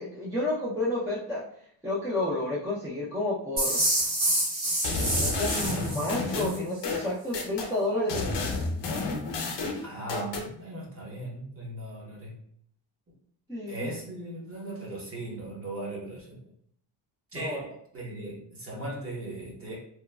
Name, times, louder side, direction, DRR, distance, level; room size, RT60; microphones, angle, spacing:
voice 1, 0.0-1.4 1.8-3.8 4.8-8.5 13.5-13.9 17.3-17.6, left 1 dB, 5° right, -7 dB, 0.4 m, -31 dB
sound 1, 3.6-6.6, right 1 dB, 70° right, 1.4 m, -27 dB
sound 2, 4.8-7.7 8.1-10.5, left 3 dB, 55° left, 0.6 m, -31 dB
voice 2, 9.8-12.4 13.7-16.4 17.3-19.7, right 1 dB, 25° right, -4 dB, 0.8 m, -38 dB
3.0 x 2.2 x 2.2 m, 0.65 s
cardioid pair, 150°, 50 cm